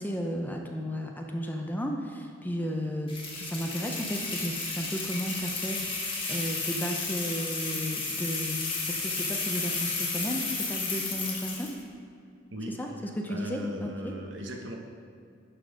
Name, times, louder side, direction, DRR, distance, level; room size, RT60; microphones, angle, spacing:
voice 1, 0.0-8.6 8.9-11.7 12.8-12.9 13.2-14.1, equal, 10° left, 2 dB, 0.6 m, -34 dB
sound 1, 3.1-11.8, left 3 dB, 25° left, 1.3 m, -33 dB
voice 2, 13.3-14.8, equal, 70° right, 2 dB, 1.0 m, -38 dB
11.5 x 3.9 x 5.0 m, 2.4 s
head